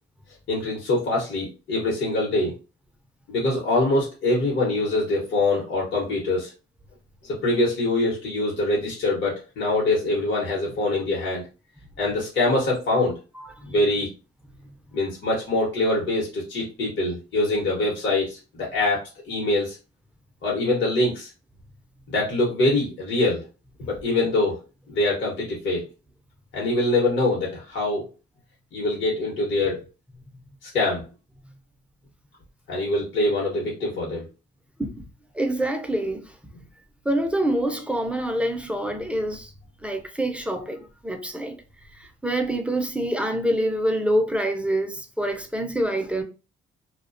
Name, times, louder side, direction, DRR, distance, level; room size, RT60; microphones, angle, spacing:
voice 1, 0.5-2.5 3.3-6.5 7.2-11.4 12.0-13.2 13.6-14.1 14.9-19.8 20.4-21.3 22.1-23.5 23.8-24.6 24.9-25.8 26.5-28.0 28.7-29.8 30.6-31.0 32.7-34.3, left 2 dB, 65° left, 0.9 m, -24 dB
voice 2, 13.3-13.7 34.8-35.0 35.3-36.3 37.0-39.5 39.8-41.6 42.0-46.2, right 1 dB, 5° right, 0.4 m, -26 dB
2.3 x 2.1 x 2.5 m
cardioid pair, 90°, 20 cm